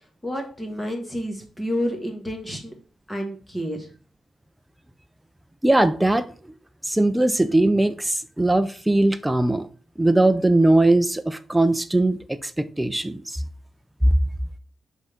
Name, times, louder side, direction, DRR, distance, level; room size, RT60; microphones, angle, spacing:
voice 1, 0.2-2.7 3.1-3.9, equal, 10° left, 1.5 m, -29 dB
voice 2, 5.6-6.3 6.8-9.7 10.0-13.4 14.0-14.1, right 2 dB, 5° right, 0.4 m, -20 dB
6.4 x 3.6 x 5.0 m
wide cardioid pair, 150°, 0 cm